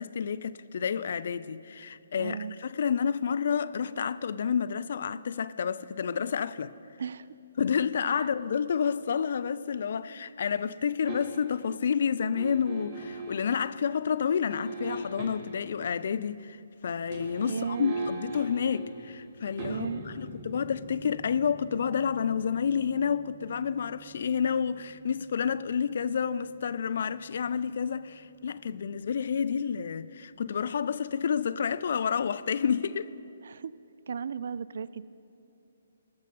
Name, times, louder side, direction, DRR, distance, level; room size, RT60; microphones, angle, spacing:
voice 1, 0.0-6.7 7.6-16.6 16.8-33.1, left 7 dB, 55° left, 0.4 m, -29 dB
voice 2, 2.2-2.6 7.0-7.3 8.2-8.3 17.4-17.9 19.7-20.0 33.4-33.7 34.1-35.0, right 6 dB, 60° right, 0.3 m, -35 dB
sound 1, 11.1-11.6 12.4-13.5 14.5-15.7 16.9-27.9 28.2-28.3, right 2 dB, 35° right, 1.5 m, -42 dB
19.5 x 6.6 x 5.3 m
figure-of-eight pair, 135°, 0 cm